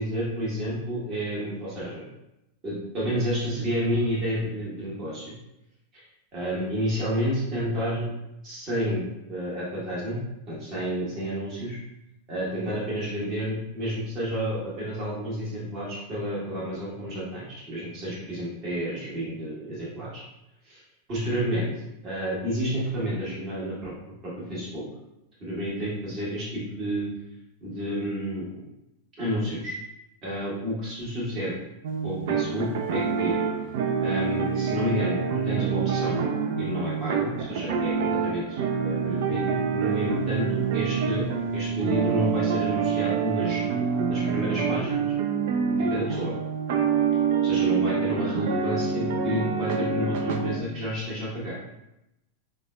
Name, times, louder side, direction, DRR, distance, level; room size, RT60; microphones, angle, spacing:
voice 1, 0.0-2.1 2.6-5.2 5.9-6.1 6.3-8.1 8.4-9.0 9.3-10.2 10.5-11.8 12.3-20.2 20.6-20.8 21.1-21.7 22.0-23.9 24.2-24.8 25.4-27.1 27.6-28.5 29.2-29.7 30.2-31.5 32.0-33.4 34.0-36.2 36.6-43.6 44.1-45.0 45.7-46.3 47.4-51.6, equal, 30° right, -7 dB, 1.4 m, -30 dB
sound 1, 31.8-50.6, right 6 dB, 55° right, 0.3 m, -26 dB
4.7 x 2.3 x 2.4 m, 0.88 s
figure-of-eight pair, 90°, 0 cm